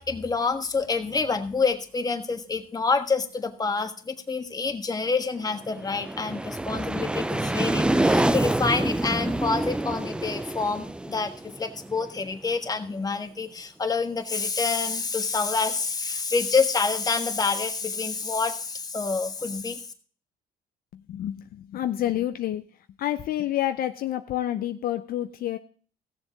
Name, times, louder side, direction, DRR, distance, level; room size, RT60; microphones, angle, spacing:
voice 1, 0.0-19.8, left 4 dB, 20° left, 6 dB, 1.4 m, -27 dB
sound 1, 5.6-12.4, right 1 dB, 5° right, 0.4 m, -27 dB
voice 2, 20.9-22.6 23.0-25.6, left 12 dB, 60° left, 9 dB, 0.6 m, -28 dB
16.0 x 7.2 x 3.9 m, 0.42 s
cardioid pair, 110°, 17 cm